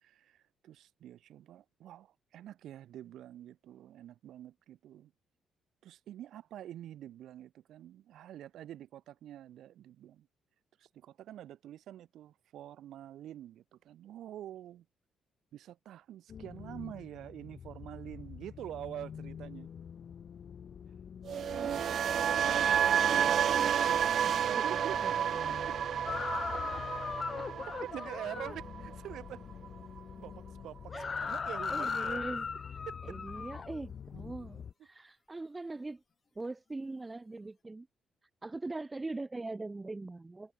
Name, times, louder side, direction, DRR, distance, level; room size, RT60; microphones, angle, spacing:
voice 1, 0.0-5.1 5.8-10.3 10.8-14.8 15.5-19.7 24.1-25.1 25.5-25.8 26.1-26.2 27.8-29.4 30.2-32.2 32.9-33.1, right 12 dB, 75° right, 6.6 m, -46 dB
sound 1, 16.3-34.7, left 7 dB, 55° left, 4.7 m, -47 dB
sound 2, 21.3-29.4 29.6-30.0, right 9 dB, 60° right, 0.4 m, -30 dB
voice 2, 21.5-24.6 25.0-25.1 26.5-26.9 27.4-27.5 30.9-31.4 31.7-32.5 33.1-36.0 36.4-37.9 38.4-40.5, right 2 dB, 20° right, 1.8 m, -42 dB
sound 3, 26.1-28.6 30.9-33.8, left 5 dB, 40° left, 0.7 m, -37 dB
cardioid pair, 90°, 0 cm